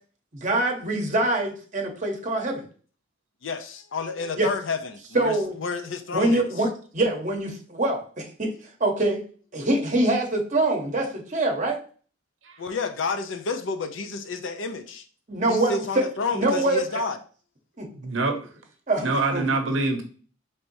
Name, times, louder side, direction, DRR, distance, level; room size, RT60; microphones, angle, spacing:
voice 1, 0.3-2.6 4.4-4.5 5.1-5.6 6.1-8.5 8.8-9.2 9.5-11.8 15.3-16.0 16.3-16.8 17.8-17.9 18.9-19.5, right 2 dB, 40° right, 2 dB, 0.9 m, -24 dB
voice 2, 3.4-6.6 12.6-15.0 15.5-17.2, left 4 dB, 70° left, 7 dB, 0.5 m, -30 dB
voice 3, 17.9-18.4 19.0-20.0, right 3 dB, 70° right, 5 dB, 0.7 m, -25 dB
4.3 x 3.4 x 2.6 m, 0.41 s
head